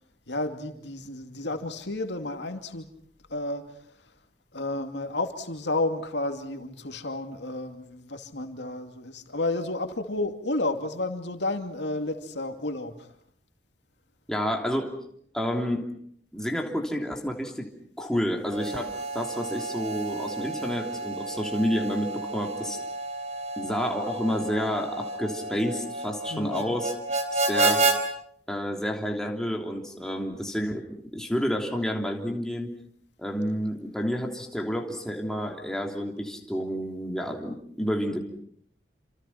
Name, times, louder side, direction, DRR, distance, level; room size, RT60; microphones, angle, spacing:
voice 1, 0.3-2.9 3.3-3.8 4.5-13.1 26.3-26.7, left 2 dB, 85° left, 2.5 m, -31 dB
voice 2, 14.3-14.9 15.3-15.9 16.3-17.7 18.0-22.8 23.6-26.9 27.3-27.8 28.5-30.9 31.1-32.7 33.2-38.2, equal, 5° left, 3.1 m, -29 dB
Harmonica, 18.5-28.0, right 2 dB, 40° right, 3.9 m, -30 dB
29.0 x 26.5 x 5.8 m
head